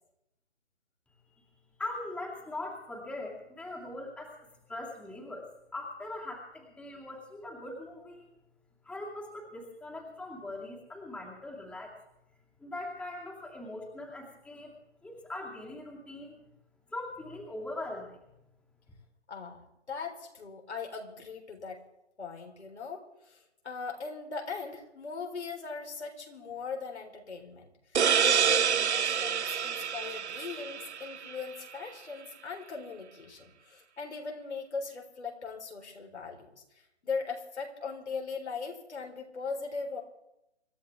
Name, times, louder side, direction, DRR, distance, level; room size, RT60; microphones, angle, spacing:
voice 1, 1.8-8.3 8.8-12.0 12.6-14.7 15.0-16.5 16.9-18.2, left 2 dB, 5° left, -2 dB, 2.4 m, -41 dB
voice 2, 19.3-21.8 22.2-36.6 37.0-40.0, left 5 dB, 80° left, 1 dB, 4.2 m, -39 dB
sound 1, 27.9-31.4, right 8 dB, 80° right, 0.8 m, -27 dB
26.0 x 12.5 x 3.5 m, 0.86 s
hypercardioid pair, 150°, 33 cm